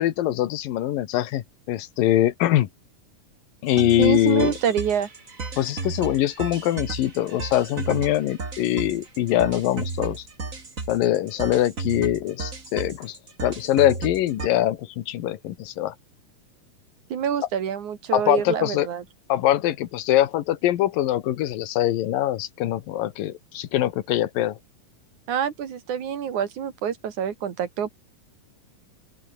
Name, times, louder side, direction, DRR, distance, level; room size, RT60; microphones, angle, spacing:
voice 1, 0.0-2.7 3.6-4.5 5.6-10.2 10.9-15.9 18.1-18.9 19.3-24.6, left 13 dB, 85° left, 3.0 m, -23 dB
sound 1, 3.7-14.5, right 3 dB, 25° right, 3.0 m, -34 dB
voice 2, 4.0-5.1 17.1-19.0 25.3-27.9, right 8 dB, 65° right, 3.5 m, -26 dB
open air
omnidirectional pair, 3.9 m